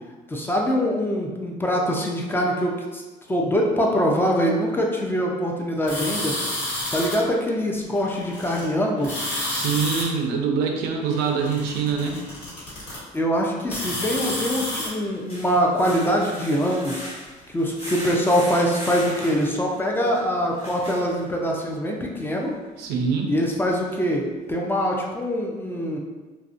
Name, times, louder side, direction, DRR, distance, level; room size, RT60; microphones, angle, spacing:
voice 1, 0.3-3.0 3.3-6.3 6.9-9.3 13.1-17.1 17.5-22.5 23.3-26.0, equal, 15° left, -1 dB, 0.3 m, -23 dB
sound 1, 5.9-7.2 7.9-8.7 9.0-10.0 11.0-13.0 13.6-14.9, left 1 dB, 90° left, 1.1 m, -30 dB
voice 2, 9.5-12.2 22.8-23.3, right 6 dB, 85° right, 2 dB, 0.4 m, -24 dB
sound 2, 14.8-21.6 22.2-22.3 22.7-22.8, equal, 35° left, 1.1 m, -38 dB
2.5 x 2.0 x 2.4 m, 1.2 s
cardioid pair, 110°, 17 cm